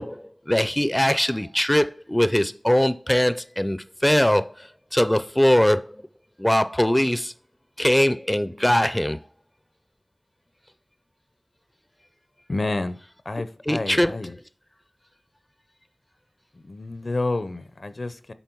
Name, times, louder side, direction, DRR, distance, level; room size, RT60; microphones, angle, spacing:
voice 1, 0.0-5.8 6.4-7.3 7.8-9.2 13.7-14.2, left 1 dB, 15° left, 0.4 m, -21 dB
voice 2, 12.5-13.0 13.3-14.3 16.7-18.3, left 2 dB, 65° left, 0.5 m, -29 dB
8.1 x 3.8 x 4.5 m
wide cardioid pair, 60°, 0 cm